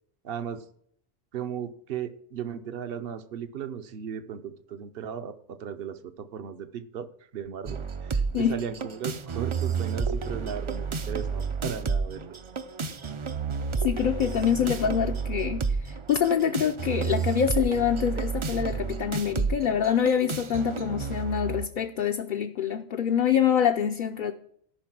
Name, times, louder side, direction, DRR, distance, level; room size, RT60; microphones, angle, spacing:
voice 1, 0.2-0.6 1.3-7.1 7.3-12.4, right 8 dB, 60° right, 0.9 m, -36 dB
sound 1, 7.6-21.7, right 5 dB, 40° right, 0.5 m, -31 dB
voice 2, 13.8-24.3, left 8 dB, 55° left, 0.7 m, -25 dB
13.5 x 5.6 x 6.0 m
omnidirectional pair, 1.1 m